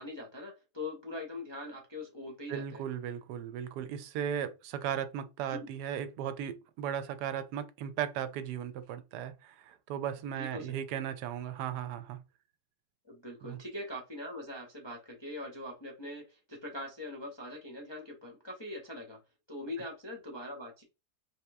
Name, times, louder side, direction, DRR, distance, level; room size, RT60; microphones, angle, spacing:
voice 1, 0.0-2.8 5.5-5.6 10.3-10.8 13.0-19.2 19.5-20.8, left 1 dB, 30° left, 0.5 m, -42 dB
voice 2, 2.5-12.2 13.4-13.6, right 9 dB, 80° right, 1.1 m, -36 dB
3.6 x 2.9 x 3.4 m
omnidirectional pair, 1.8 m